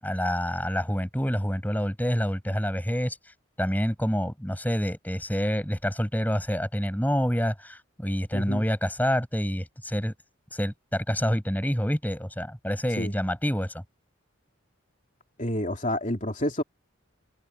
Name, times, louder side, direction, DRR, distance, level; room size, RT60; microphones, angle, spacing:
voice 1, 0.0-3.2 3.6-10.1 10.5-13.8, equal, 10° left, 6.1 m, -27 dB
voice 2, 8.3-8.6 13.0-13.1 15.4-16.6, left 1 dB, 35° left, 2.9 m, -29 dB
head